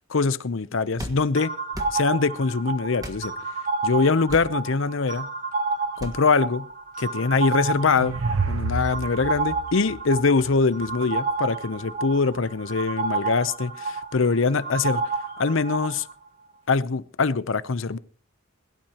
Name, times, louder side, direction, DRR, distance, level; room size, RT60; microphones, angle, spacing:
voice 1, 0.1-1.5 1.9-3.3 3.8-5.3 6.0-6.7 7.0-8.2 8.5-15.0 15.4-16.1 16.7-18.0, left 4 dB, 65° left, 0.7 m, -23 dB
sound 1, 1.0-1.2 1.7-2.0 3.0-3.2 4.3-4.5 6.0-6.2, equal, 15° right, 1.5 m, -35 dB
sound 2, 1.3-16.1, right 3 dB, 40° right, 1.5 m, -30 dB
sound 3, 7.6-10.9, right 3 dB, 85° right, 0.9 m, -30 dB
21.5 x 12.0 x 2.9 m
head